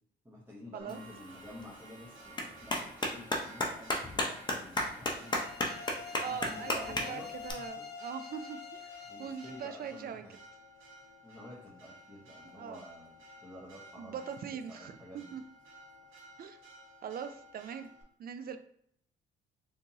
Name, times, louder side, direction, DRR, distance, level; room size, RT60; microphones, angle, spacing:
voice 1, 0.2-5.5 6.3-7.9 9.0-10.3 11.2-15.4, left 1 dB, 10° right, -8 dB, 1.1 m, -50 dB
Church bell, 0.8-18.0, right 1 dB, 85° right, 0.9 m, -55 dB
Clapping, 0.9-7.5, left 1 dB, 20° left, 0.7 m, -36 dB
sound 1, 5.2-10.0, left 6 dB, 55° left, 0.5 m, -46 dB
voice 2, 6.1-10.2 12.6-12.8 14.0-15.4 16.4-16.6 17.0-17.9 18.2-18.6, right 7 dB, 50° right, 9 dB, 0.4 m, -42 dB
3.4 x 2.7 x 2.9 m, 0.67 s
cardioid pair, 90°, 20 cm